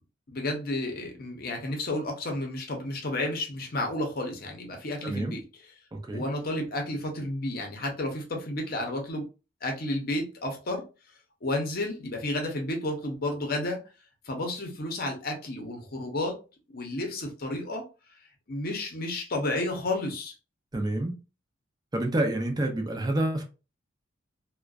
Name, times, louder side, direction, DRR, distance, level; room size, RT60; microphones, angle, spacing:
voice 1, 0.3-5.5 6.1-9.3 9.6-10.8 11.4-13.8 14.3-16.4 16.7-17.8 18.5-20.3, left 1 dB, 50° left, 0.7 m, -31 dB
voice 2, 5.0-5.4 5.9-6.2 20.7-21.1 21.9-23.5, right 1 dB, 20° right, 0.4 m, -28 dB
2.4 x 2.2 x 2.3 m
head